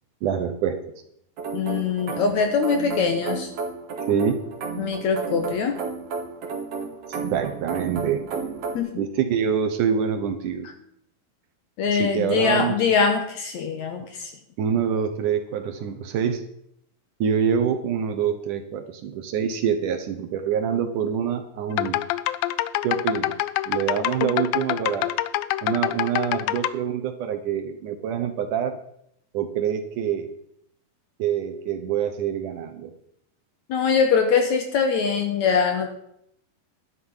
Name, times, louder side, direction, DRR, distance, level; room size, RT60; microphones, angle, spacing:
voice 1, 0.2-0.8 4.1-4.4 4.7-4.9 7.1-8.2 9.0-10.7 11.9-12.7 14.0-14.1 14.6-16.4 17.2-22.0 22.8-23.3 23.7-25.1 25.6-28.8 29.3-30.3 31.2-32.9, right 8 dB, 70° right, 7 dB, 2.3 m, -25 dB
sound 1, 1.4-8.8, right 5 dB, 45° right, 2.7 m, -32 dB
voice 2, 1.5-3.5 4.8-5.8 8.7-8.9 11.8-14.3 33.7-35.9, left 5 dB, 65° left, 5 dB, 2.1 m, -22 dB
sound 2, 21.7-26.7, left 15 dB, 80° left, 2.3 m, -26 dB
11.5 x 10.5 x 5.6 m, 0.72 s
omnidirectional pair, 4.2 m